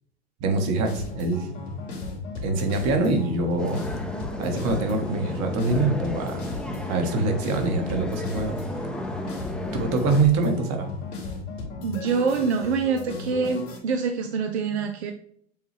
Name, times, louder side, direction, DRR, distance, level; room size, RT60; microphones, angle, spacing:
voice 1, 0.4-1.5 2.4-3.8 4.4-6.5 6.9-8.6 9.8-10.9, right 3 dB, 50° right, 4 dB, 1.2 m, -24 dB
sound 1, 0.8-13.8, left 3 dB, 80° left, 1.9 m, -35 dB
sound 2, 3.6-10.2, equal, ahead, 0.6 m, -34 dB
voice 2, 11.8-15.1, right 5 dB, 85° right, 5 dB, 0.6 m, -25 dB
6.9 x 2.3 x 3.2 m, 0.67 s
hypercardioid pair, 90°, 32 cm